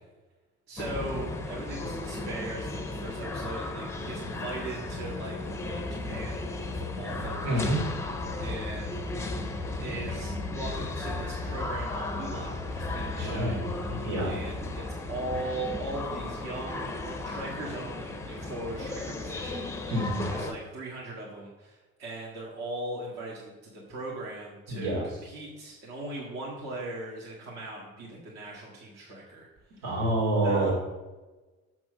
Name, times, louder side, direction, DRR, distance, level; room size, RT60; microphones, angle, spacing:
voice 1, 0.7-7.9 8.4-9.3 9.8-13.6 14.2-29.5 29.8-29.9 30.4-30.7, right 2 dB, 60° right, -4 dB, 1.9 m, -39 dB
sound 1, 0.8-20.5, left 2 dB, 10° left, 0.5 m, -35 dB
voice 2, 7.4-7.8 13.1-14.3 19.9-20.3 24.7-25.0 29.8-30.7, right 1 dB, 85° right, -2 dB, 3.0 m, -28 dB
6.2 x 6.0 x 6.5 m, 1.2 s
cardioid pair, 160°, 30 cm